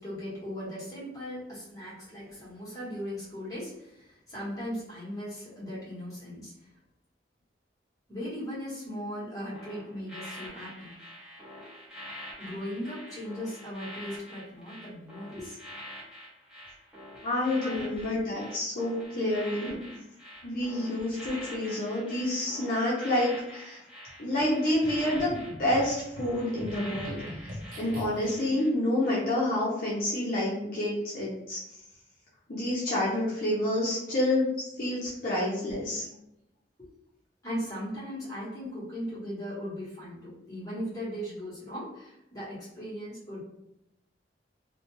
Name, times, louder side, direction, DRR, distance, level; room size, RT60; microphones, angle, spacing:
voice 1, 0.0-6.7 8.1-10.9 12.4-15.6 17.5-17.9 19.4-19.6 24.7-24.8 26.3-26.4 36.8-36.9 37.4-43.4, equal, 20° left, -8 dB, 1.1 m, -38 dB
sound 1, 9.5-28.7 29.0-29.3, equal, 5° right, 0.9 m, -45 dB
voice 2, 17.2-19.8 20.4-23.8 24.2-27.2 27.8-31.6 32.5-36.0, left 1 dB, 50° left, -7 dB, 0.6 m, -28 dB
sound 2, 24.8-28.5, equal, 45° right, 0.5 m, -42 dB
2.3 x 2.2 x 3.0 m, 0.85 s
head